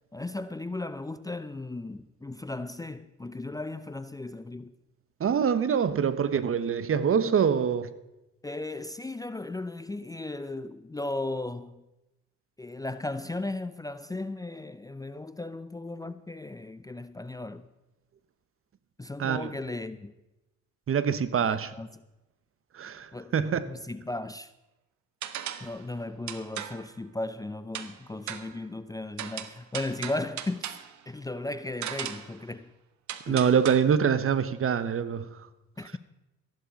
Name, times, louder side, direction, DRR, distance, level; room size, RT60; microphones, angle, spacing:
voice 1, 0.1-4.7 8.4-11.8 12.6-17.7 19.0-20.1 21.4-21.9 23.1-24.5 25.6-30.7 31.1-32.7 33.3-33.5 35.8-35.9, left 2 dB, 10° left, 0.6 m, -36 dB
voice 2, 5.2-7.9 19.2-19.5 20.9-21.7 22.7-23.7 33.3-35.3, right 7 dB, 45° right, 1.0 m, -25 dB
sound 1, 25.2-25.8 26.3-26.9 27.8-28.0 28.3-28.6 29.2-30.9 31.8-32.4 33.1-33.8, right 10 dB, 65° right, 1.2 m, -37 dB
14.0 x 11.5 x 5.2 m
supercardioid pair, 80°, 31 cm